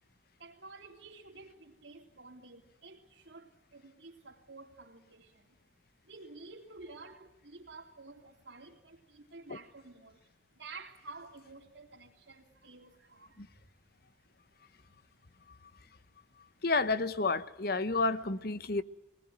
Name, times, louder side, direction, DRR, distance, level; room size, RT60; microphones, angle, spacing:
voice 1, 0.4-5.6 6.0-14.1 14.6-14.7, right 3 dB, 80° right, 3.3 m, -51 dB
voice 2, 16.6-18.8, left 3 dB, 55° left, 0.9 m, -30 dB
20.0 x 19.5 x 9.3 m
head